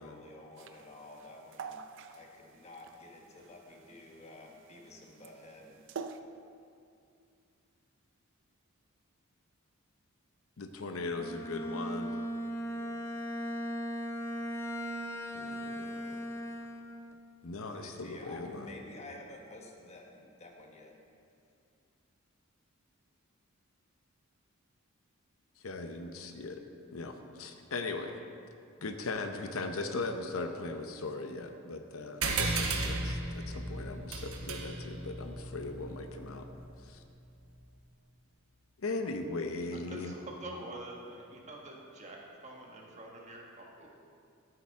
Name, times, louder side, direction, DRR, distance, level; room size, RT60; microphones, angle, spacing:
voice 1, 0.0-1.8 2.1-5.8 17.7-20.9, left 2 dB, 30° left, 1 dB, 1.2 m, -50 dB
sound 1, 0.6-6.2, right 5 dB, 60° right, 0.5 m, -46 dB
voice 2, 10.6-12.2 15.3-16.2 17.4-18.7 25.6-26.6 26.9-28.1 28.8-36.5 36.8-37.0 38.8-40.1, left 3 dB, 75° left, 6 dB, 0.7 m, -39 dB
Bowed string instrument, 11.1-17.2, equal, 10° left, 0.4 m, -38 dB
sound 2, 32.2-37.1, right 3 dB, 90° right, 1.1 m, -35 dB
voice 3, 39.7-43.9, right 1 dB, 35° right, -1 dB, 1.4 m, -46 dB
13.0 x 8.7 x 3.6 m, 2.4 s
head